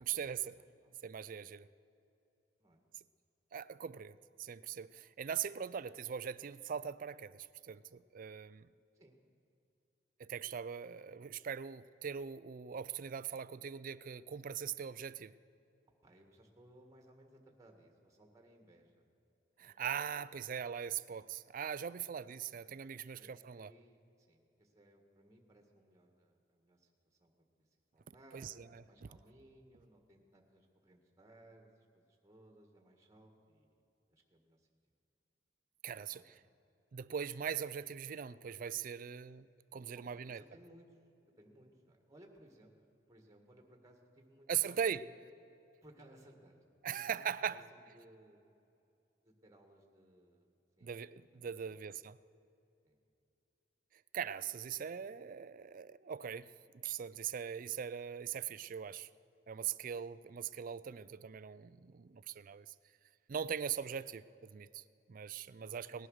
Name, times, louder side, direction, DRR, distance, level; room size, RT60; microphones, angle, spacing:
voice 1, 0.0-0.6 1.0-1.7 3.5-8.7 10.2-15.3 19.6-23.7 28.1-28.8 35.8-36.2 36.9-39.5 39.7-40.4 44.5-45.0 46.8-47.6 50.8-52.2 54.1-59.1 59.5-62.7 63.3-66.1, right 8 dB, 50° right, 17 dB, 0.4 m, -41 dB
voice 2, 0.6-1.0 2.6-2.9 8.9-9.2 16.0-19.1 19.6-19.8 22.1-22.4 23.2-27.3 27.9-33.8 34.1-34.7 36.1-36.4 39.9-42.8 43.1-45.3 45.8-46.6 46.9-48.5 49.2-51.8 52.8-53.0 63.7-63.8 65.6-66.1, right 1 dB, 20° right, 2 dB, 1.7 m, -62 dB
18.5 x 11.0 x 6.5 m, 2.7 s
head